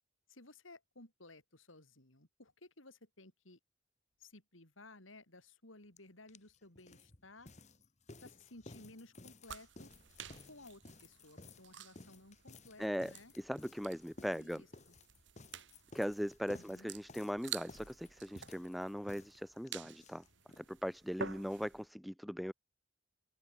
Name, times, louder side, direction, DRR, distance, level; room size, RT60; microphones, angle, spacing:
voice 1, 0.3-3.6 4.2-7.5 8.2-9.9 10.5-13.3 14.3-15.0 16.6-16.9, left 2 dB, 85° left, 5.7 m, -57 dB
sound 1, 6.0-6.1 6.3-20.7 20.9-21.0 21.3-21.4 21.6-21.7, left 2 dB, 35° left, 1.6 m, -56 dB
sound 2, 9.4-21.9, right 8 dB, 65° right, 1.9 m, -51 dB
voice 2, 12.8-14.6 15.9-20.2 20.6-22.5, equal, ahead, 0.3 m, -39 dB
head